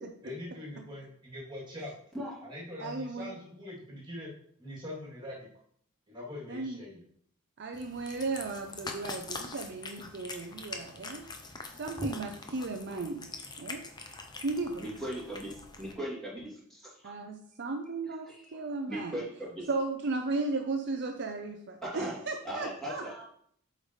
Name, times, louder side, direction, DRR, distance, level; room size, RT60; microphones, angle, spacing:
voice 1, 0.2-1.9 2.4-4.3 4.6-5.5 6.1-7.0, left 1 dB, 20° right, -6 dB, 2.8 m, -42 dB
voice 2, 2.8-3.3 6.5-6.8 7.6-11.3 11.8-13.3 13.6-13.8 14.4-14.8 17.0-19.2 19.7-23.2, right 3 dB, 50° right, 5 dB, 0.6 m, -35 dB
Cat, 7.7-15.9, left 3 dB, 20° left, 0.7 m, -43 dB
voice 3, 14.8-15.5 15.8-16.8 18.9-19.7 21.8-22.2 22.4-23.2, right 1 dB, ahead, -7 dB, 2.9 m, -38 dB
8.2 x 5.2 x 3.2 m, 0.64 s
head